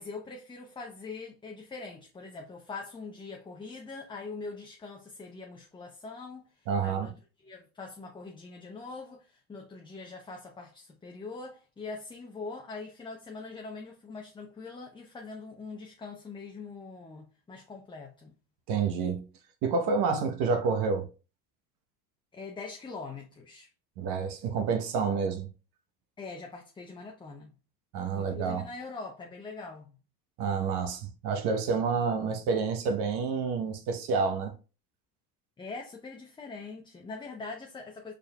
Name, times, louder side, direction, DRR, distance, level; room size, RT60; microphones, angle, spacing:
voice 1, 0.0-7.1 7.4-18.3 22.3-23.7 26.2-27.5 28.1-30.0 35.6-38.1, left 4 dB, 10° left, 0.5 m, -43 dB
voice 2, 6.7-7.1 18.7-19.3 19.6-21.1 24.0-25.5 27.9-28.7 30.4-34.5, right 5 dB, 60° right, 1.1 m, -28 dB
4.8 x 3.3 x 2.3 m
supercardioid pair, 100°, 43 cm